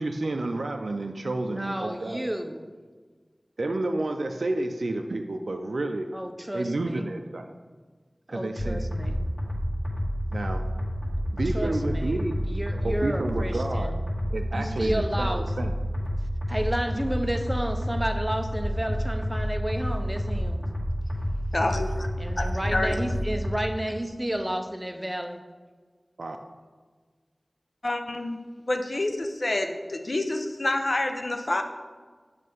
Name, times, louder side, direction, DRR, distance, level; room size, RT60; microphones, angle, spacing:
voice 1, 0.0-2.3 3.6-6.1 6.5-7.4 8.3-9.1 10.3-10.6 11.3-12.4 12.8-13.9 14.3-15.7 26.2-26.4, right 2 dB, 90° right, 5 dB, 0.3 m, -30 dB
voice 2, 1.4-2.7 6.1-7.1 8.3-9.3 11.5-14.0 14.5-15.5 16.5-20.6 22.2-25.4, right 1 dB, 15° right, 5 dB, 0.6 m, -31 dB
sound 1, 8.6-23.6, equal, 15° left, 1.5 m, -29 dB
voice 3, 21.5-22.1 22.4-23.0 27.8-28.4 28.7-31.6, left 2 dB, 60° left, 6 dB, 0.6 m, -28 dB
7.5 x 3.2 x 5.3 m, 1.5 s
wide cardioid pair, 40°, 0 cm